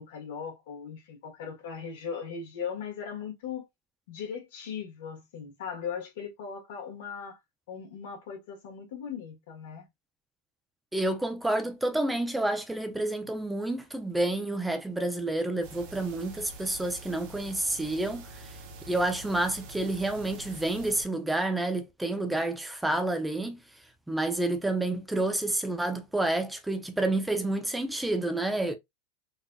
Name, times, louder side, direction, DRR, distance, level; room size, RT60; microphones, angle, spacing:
voice 1, 0.0-3.7 4.1-7.4 7.7-9.9, left 7 dB, 75° left, 1.5 m, -38 dB
voice 2, 10.9-18.4 18.9-23.6 24.1-28.8, right 2 dB, 5° right, 0.5 m, -29 dB
sound 1, 15.6-21.0, right 2 dB, 55° right, 0.8 m, -46 dB
3.9 x 2.6 x 2.3 m
supercardioid pair, 135°, 0 cm